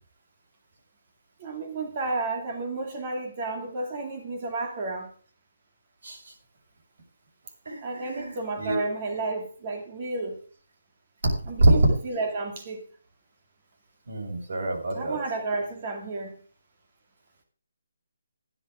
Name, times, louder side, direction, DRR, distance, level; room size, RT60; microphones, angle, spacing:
voice 1, 1.4-5.1 7.8-10.4 11.5-12.8 14.9-16.4, right 3 dB, 20° right, 3 dB, 2.6 m, -32 dB
voice 2, 7.7-8.9 11.6-11.7 14.1-15.2, right 2 dB, 50° right, 1 dB, 6.4 m, -26 dB
15.5 x 11.0 x 3.8 m, 0.38 s
hypercardioid pair, 180°, 0 cm